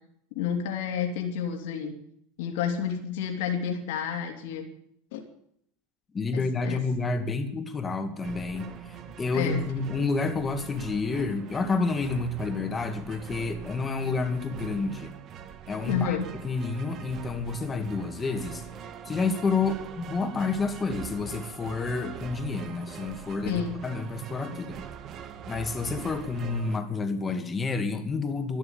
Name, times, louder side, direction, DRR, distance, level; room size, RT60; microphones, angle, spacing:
voice 1, 0.3-1.9 2.4-4.7 5.1-5.2 6.3-6.8 9.3-9.6 15.9-16.3 23.4-23.8, left 8 dB, 75° left, 3 dB, 2.9 m, -30 dB
voice 2, 6.1-15.2 15.7-16.2 16.4-18.7 19.0-24.8 25.5-28.6, left 4 dB, 20° left, 7 dB, 2.3 m, -29 dB
sound 1, 8.2-26.8, right 8 dB, 45° right, 1.4 m, -42 dB
13.0 x 11.0 x 8.8 m, 0.70 s
supercardioid pair, 110°, 0 cm